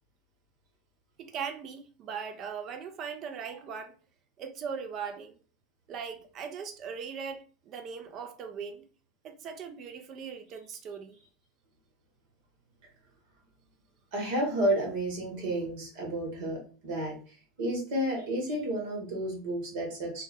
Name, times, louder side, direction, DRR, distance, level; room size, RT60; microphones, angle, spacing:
voice 1, 1.2-4.0 4.4-5.4 5.9-8.8 9.2-11.2, right 6 dB, 45° right, 0.4 m, -39 dB
voice 2, 14.1-20.2, right 1 dB, 60° right, 1.1 m, -31 dB
2.2 x 2.0 x 3.3 m
figure-of-eight pair, 80°, 0 cm